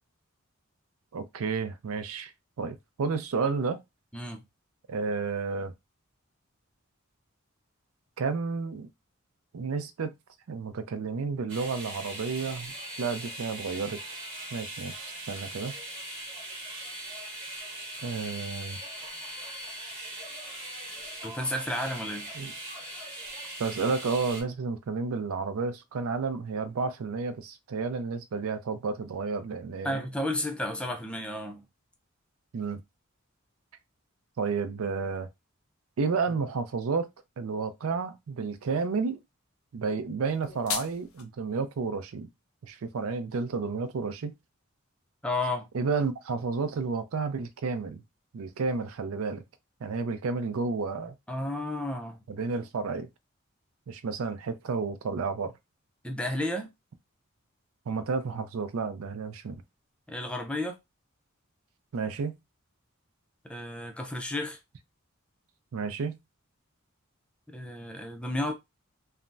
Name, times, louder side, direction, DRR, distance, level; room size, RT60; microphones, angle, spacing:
voice 1, 1.1-2.3 2.6-3.8 4.9-5.7 8.2-8.9 9.5-10.1 10.5-14.0 14.5-15.7 18.0-18.8 22.4-22.5 23.6-30.0 32.5-32.8 34.4-35.3 36.0-37.1 37.4-39.2 39.7-42.3 42.6-44.3 45.7-48.0 48.3-49.4 49.8-51.1 52.3-53.1 53.9-55.5 57.9-59.6 61.9-62.4 65.7-66.2, right 4 dB, 85° right, 0.4 m, -31 dB
voice 2, 4.1-4.4 21.2-22.3 29.8-31.6 45.2-45.7 51.3-52.2 56.0-56.7 60.1-60.8 63.4-64.6 67.5-68.5, left 1 dB, 5° left, 0.4 m, -32 dB
sound 1, 11.5-24.4, right 1 dB, 25° right, 1.0 m, -40 dB
sound 2, 40.2-41.2, left 7 dB, 85° left, 0.6 m, -36 dB
3.3 x 2.0 x 2.6 m
head